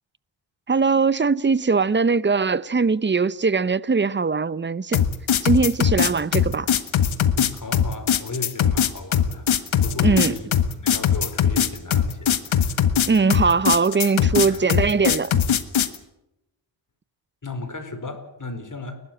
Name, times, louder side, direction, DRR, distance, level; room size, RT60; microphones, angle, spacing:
voice 1, 0.7-5.0 5.4-6.7 10.0-10.4 13.1-15.3, right 4 dB, 25° right, 0.8 m, -21 dB
sound 1, 4.9-16.0, left 9 dB, 80° left, 1.5 m, -20 dB
voice 2, 7.4-10.5 10.7-12.9 14.5-14.7 17.4-19.0, left 3 dB, 40° left, 4.7 m, -35 dB
29.5 x 12.5 x 8.9 m
cardioid pair, 70°, 47 cm